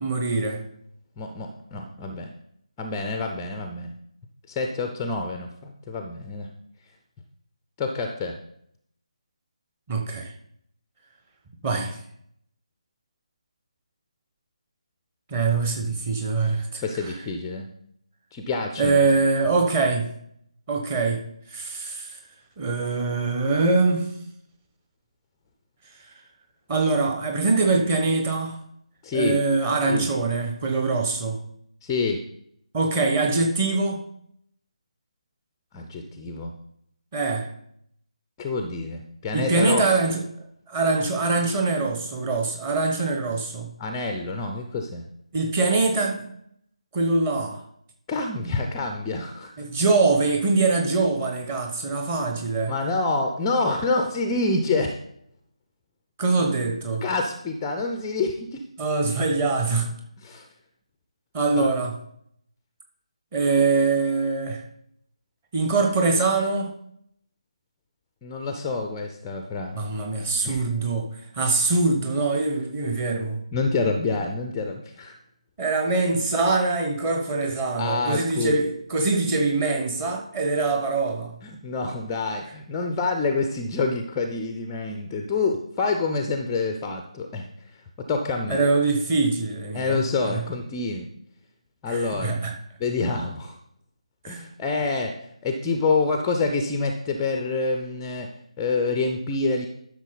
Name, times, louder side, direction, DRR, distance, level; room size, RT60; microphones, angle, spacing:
voice 1, 0.0-0.6 9.9-10.3 11.6-12.0 15.3-17.1 18.8-20.1 20.7-21.2 21.5-22.1 22.6-24.0 26.7-28.6 29.1-31.4 32.7-34.0 37.1-37.5 39.3-40.2 40.7-43.7 45.3-46.3 46.9-47.6 49.6-52.7 56.2-57.0 58.8-59.9 61.3-62.0 63.3-64.6 65.5-66.7 69.7-71.1 71.3-73.4 75.6-81.3 88.5-90.4 91.9-92.5 94.2-94.4, right 3 dB, 15° right, 3 dB, 1.1 m, -23 dB
voice 2, 1.2-2.3 2.8-3.9 4.5-6.5 7.8-8.4 16.8-17.6 18.3-19.1 29.0-29.4 29.9-30.1 31.8-32.2 35.7-36.5 38.4-40.0 43.8-45.0 48.1-49.5 52.7-55.0 57.0-58.6 60.2-60.4 61.6-61.7 68.2-69.8 70.4-70.6 73.5-75.1 77.8-78.6 81.4-87.5 88.1-88.6 89.7-91.1 91.8-92.4 92.8-93.6 94.3-98.3 98.6-99.7, left 3 dB, 10° left, 4 dB, 0.5 m, -27 dB
12.0 x 6.3 x 4.0 m, 0.71 s
figure-of-eight pair, 155°, 4 cm